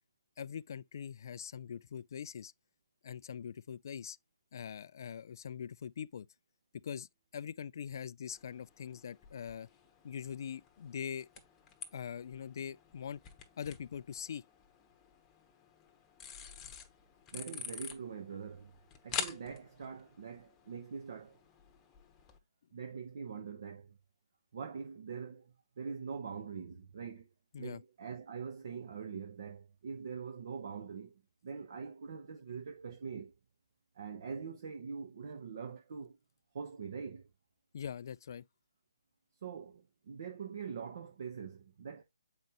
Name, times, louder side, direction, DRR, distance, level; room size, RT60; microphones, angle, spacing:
voice 1, 0.4-2.5 3.0-4.2 4.5-6.3 6.7-9.7 10.0-11.3 11.9-13.2 13.6-14.4 16.6-16.7 27.5-27.8 37.7-38.5, left 8 dB, 55° left, 0.3 m, -43 dB
sound 1, 8.3-22.4, left 7 dB, 15° left, 1.0 m, -48 dB
voice 2, 17.3-18.7 19.0-21.4 22.7-24.0 24.5-27.3 27.6-33.3 33.9-36.2 36.5-37.3 39.4-42.0, right 6 dB, 55° right, 1.0 m, -43 dB
7.9 x 5.2 x 3.0 m
hypercardioid pair, 155°, 2 cm